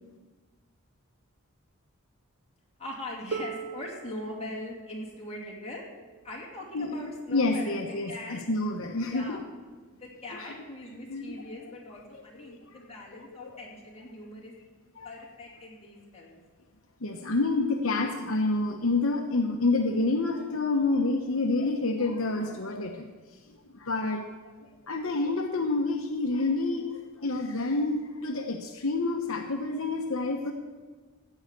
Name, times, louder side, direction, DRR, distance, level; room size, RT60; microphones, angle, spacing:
voice 1, 2.8-5.9 6.2-8.4 8.9-9.4 10.0-14.5 15.0-16.4, left 1 dB, 30° left, -3 dB, 2.7 m, -41 dB
Harp, 3.3-9.1 10.2-10.3, right 5 dB, 50° right, 0.7 m, -43 dB
voice 2, 7.3-9.4 10.3-10.5 11.1-11.4 12.5-12.6 13.4-13.5 15.0-15.1 17.0-23.1 23.5-24.3 24.8-30.5, left 3 dB, 75° left, 3 dB, 1.0 m, -28 dB
16.0 x 5.7 x 8.3 m, 1.4 s
head